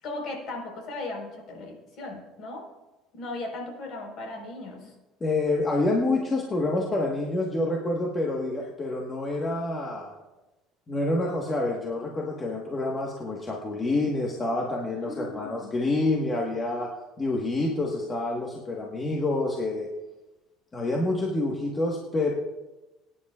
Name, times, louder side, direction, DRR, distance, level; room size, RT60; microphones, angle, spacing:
voice 1, 0.0-2.6 3.1-4.9 15.0-15.7, left 2 dB, 55° left, 1 dB, 4.4 m, -37 dB
voice 2, 5.2-10.1 10.9-19.9 20.7-22.3, left 2 dB, 20° left, -2 dB, 1.4 m, -27 dB
23.0 x 10.0 x 2.4 m, 1.1 s
cardioid pair, 130°, 0 cm